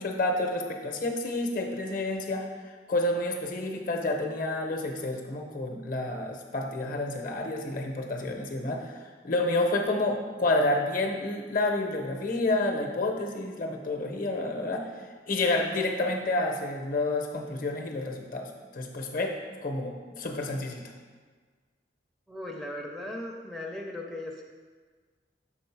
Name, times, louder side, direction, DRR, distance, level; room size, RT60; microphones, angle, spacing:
voice 1, 0.0-14.9 15.3-19.3 19.6-20.8, left 2 dB, 50° left, 3 dB, 0.7 m, -29 dB
voice 2, 22.3-24.4, left 1 dB, ahead, -2 dB, 0.4 m, -37 dB
6.2 x 3.6 x 4.6 m, 1.5 s
head